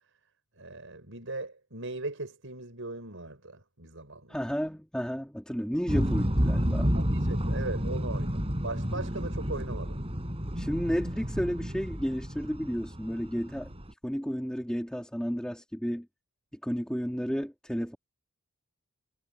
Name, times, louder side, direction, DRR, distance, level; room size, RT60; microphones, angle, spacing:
voice 1, 0.6-4.4 6.9-10.0, right 2 dB, 65° right, 7.5 m, -39 dB
voice 2, 4.3-6.9 10.6-13.7 14.0-16.1 16.6-18.0, equal, 5° left, 4.2 m, -32 dB
sound 1, 5.9-13.9, equal, 30° right, 6.9 m, -30 dB
head